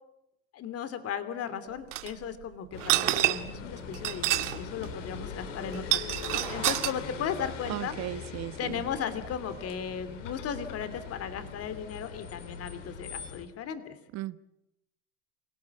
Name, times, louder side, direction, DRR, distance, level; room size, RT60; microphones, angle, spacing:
voice 1, 0.5-8.3 8.6-14.0, left 7 dB, 40° left, 2.9 m, -36 dB
sound 1, 1.9-2.1 2.8-3.6 3.9-4.6 4.8-4.9 5.7-6.9, right 15 dB, 85° right, 1.9 m, -27 dB
sound 2, 2.7-13.5, left 6 dB, 85° left, 3.4 m, -41 dB
voice 2, 7.7-8.8 14.1-14.4, right 15 dB, 45° right, 1.2 m, -36 dB
28.5 x 18.0 x 8.5 m
supercardioid pair, 105°, 36 cm